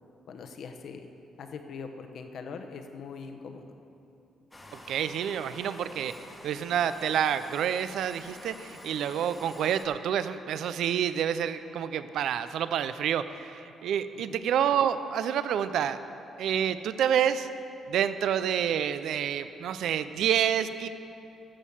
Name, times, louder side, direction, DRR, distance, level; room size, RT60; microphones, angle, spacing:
voice 1, 0.3-1.1 1.4-3.7 14.1-14.2, left 5 dB, 65° left, 6 dB, 0.9 m, -41 dB
sound 1, 4.5-9.9, left 1 dB, 15° left, 1.2 m, -48 dB
voice 2, 4.7-6.1 6.4-16.0 16.4-17.5 17.9-20.9, right 9 dB, 75° right, 12 dB, 0.4 m, -28 dB
12.5 x 6.5 x 7.1 m, 2.8 s
cardioid pair, 90°, 0 cm